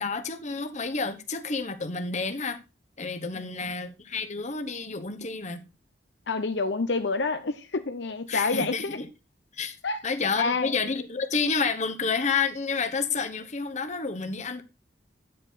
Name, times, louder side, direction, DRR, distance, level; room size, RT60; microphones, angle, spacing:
voice 1, 0.0-2.6 3.0-5.7 8.3-9.1 9.5-9.8 10.0-14.6, left 4 dB, 40° left, 1.1 m, -29 dB
voice 2, 6.3-9.0 9.8-10.0 10.4-10.7, left 3 dB, 70° left, 0.8 m, -28 dB
9.7 x 7.8 x 3.9 m
head